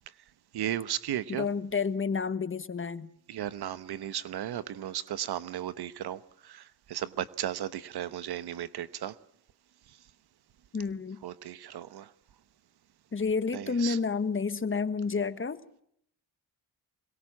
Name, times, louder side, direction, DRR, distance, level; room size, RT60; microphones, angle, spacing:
voice 1, 0.5-1.5 3.3-9.1 11.2-12.1 13.5-14.0, right 11 dB, 80° right, 1.1 m, -35 dB
voice 2, 1.3-3.1 10.7-11.2 13.1-15.6, left 5 dB, 30° left, 1.3 m, -30 dB
24.5 x 22.0 x 7.4 m
cardioid pair, 85°, 39 cm